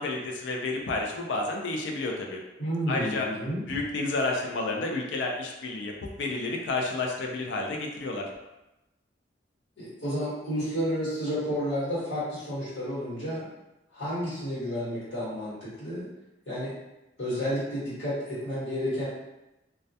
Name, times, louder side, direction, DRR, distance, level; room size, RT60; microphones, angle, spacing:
voice 1, 0.0-2.4 2.9-3.3 3.7-8.3, left 2 dB, 70° left, 0 dB, 0.4 m, -30 dB
voice 2, 2.6-3.6 9.8-13.4 13.9-16.0 16.5-16.7 17.2-19.1, equal, 85° left, -10 dB, 1.2 m, -31 dB
2.2 x 2.1 x 2.6 m, 0.98 s
head